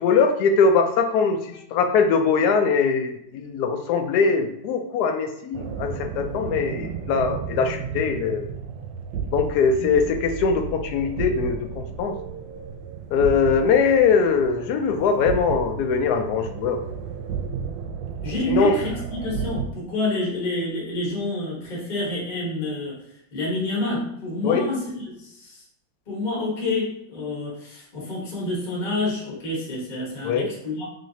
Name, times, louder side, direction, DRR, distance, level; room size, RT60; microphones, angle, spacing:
voice 1, 0.0-8.5 9.3-12.2 13.1-16.8 18.5-18.8 24.4-24.6 30.2-30.5, left 5 dB, 75° left, 5 dB, 0.9 m, -21 dB
sound 1, 5.5-19.7, right 7 dB, 75° right, 1.2 m, -33 dB
voice 2, 18.2-23.0 23.3-25.6 26.1-30.9, left 2 dB, 30° left, -4 dB, 1.1 m, -28 dB
3.9 x 3.3 x 2.7 m, 0.78 s
omnidirectional pair, 2.2 m